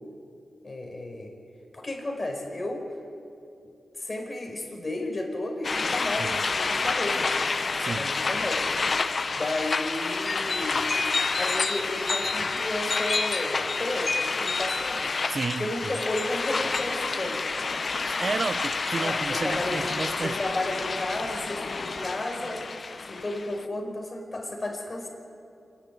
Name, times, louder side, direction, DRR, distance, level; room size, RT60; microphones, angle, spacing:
voice 1, 0.6-1.3 1.7-2.9 4.0-7.3 7.8-8.7 9.3-10.9 11.4-15.1 15.6-17.4 19.0-19.9 20.2-22.6 23.1-25.1, left 1 dB, 35° left, 1 dB, 5.2 m, -33 dB
sound 1, 5.6-23.6, left 4 dB, 55° left, 0.8 m, -28 dB
voice 2, 7.8-8.1 15.3-15.9 18.1-20.4, right 4 dB, 55° right, 15 dB, 0.7 m, -32 dB
26.0 x 11.5 x 9.5 m, 2.6 s
cardioid pair, 60°, 0 cm